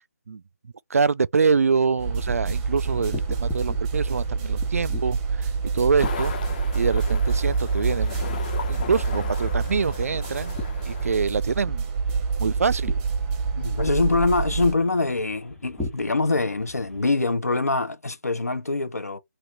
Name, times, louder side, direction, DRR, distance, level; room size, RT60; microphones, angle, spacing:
voice 1, 0.9-5.5 5.7-6.3 6.7-8.2 8.7-10.6 10.9-11.9 12.4-12.9, right 5 dB, 65° right, 0.3 m, -25 dB
sound 1, 2.0-17.0, left 2 dB, ahead, 1.3 m, -41 dB
sound 2, 2.0-14.7, right 5 dB, 15° right, 0.7 m, -27 dB
sound 3, 6.0-11.2, left 6 dB, 30° left, 0.8 m, -37 dB
voice 2, 13.5-19.2, left 3 dB, 90° left, 1.2 m, -24 dB
3.0 x 2.9 x 3.8 m
figure-of-eight pair, 155°, 8 cm